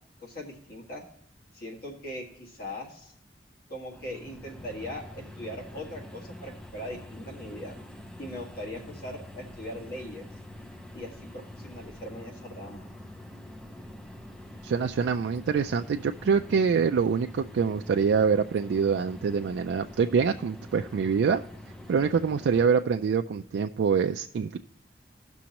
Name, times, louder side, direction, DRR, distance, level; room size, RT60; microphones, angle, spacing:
voice 1, 0.2-1.0 1.5-3.1 3.7-7.7 8.2-10.2 10.9-12.8, left 1 dB, 60° left, 0 dB, 1.7 m, -40 dB
sound 1, 3.9-22.6, left 1 dB, 5° left, 0.5 m, -45 dB
voice 2, 14.6-21.4 21.9-24.6, right 6 dB, 85° right, 6 dB, 0.3 m, -25 dB
16.0 x 6.1 x 2.9 m, 0.72 s
head